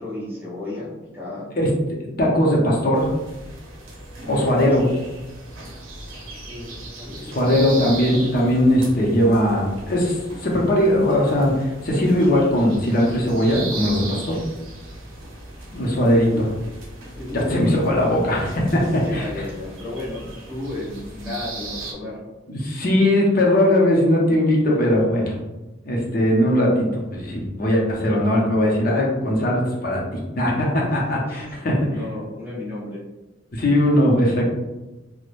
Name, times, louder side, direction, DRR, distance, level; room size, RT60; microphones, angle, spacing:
voice 1, 0.0-1.5 4.2-4.9 6.0-7.6 15.9-16.5 17.1-18.3 18.9-22.2 31.3-31.6 31.9-33.0, left 2 dB, 10° right, -8 dB, 0.8 m, -34 dB
voice 2, 2.2-3.1 4.3-4.8 7.4-14.4 15.7-16.3 17.3-19.3 22.5-25.3 25.8-31.7 33.5-34.5, left 1 dB, 45° left, -3 dB, 0.6 m, -19 dB
sound 1, 2.9-21.9, right 2 dB, 80° right, 0.7 m, -38 dB
3.1 x 2.1 x 2.4 m, 1.1 s
head